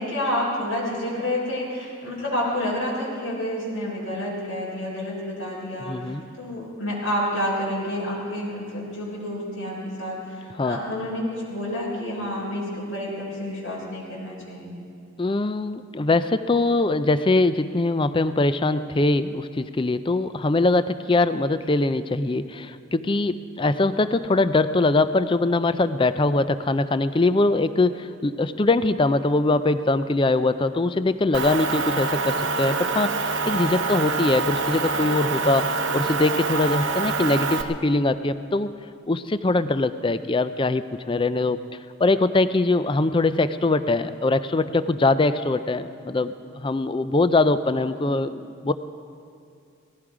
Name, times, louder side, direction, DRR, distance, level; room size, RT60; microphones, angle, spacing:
voice 1, 0.0-14.8, left 1 dB, 80° left, -6 dB, 3.9 m, -29 dB
voice 2, 5.8-6.3 10.5-10.8 15.2-38.7 39.1-41.6 42.0-48.7, left 2 dB, 25° left, 13 dB, 0.4 m, -22 dB
Motor vehicle (road) / Engine, 31.3-37.6, right 4 dB, 65° right, 0.9 m, -26 dB
18.5 x 15.0 x 4.9 m, 2.4 s
head